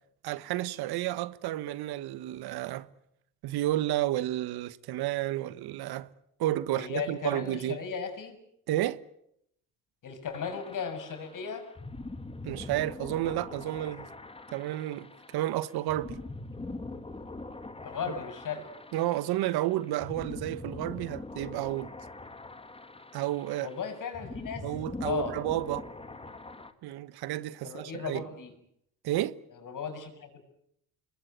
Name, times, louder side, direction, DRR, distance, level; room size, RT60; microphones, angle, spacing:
voice 1, 0.2-2.9 3.4-6.1 6.4-7.8 8.7-9.0 12.4-14.1 14.5-16.2 18.9-21.9 23.1-23.7 24.6-25.9 26.8-28.2 29.0-29.4, right 14 dB, 70° right, 1.3 m, -31 dB
voice 2, 6.7-8.4 10.0-11.7 17.8-18.6 23.6-24.6 25.0-25.3 27.6-28.5 29.6-30.4, left 6 dB, 50° left, 7.3 m, -36 dB
sound 1, 10.3-26.7, left 2 dB, 15° left, 2.4 m, -43 dB
26.0 x 21.0 x 9.3 m
supercardioid pair, 80°, 39 cm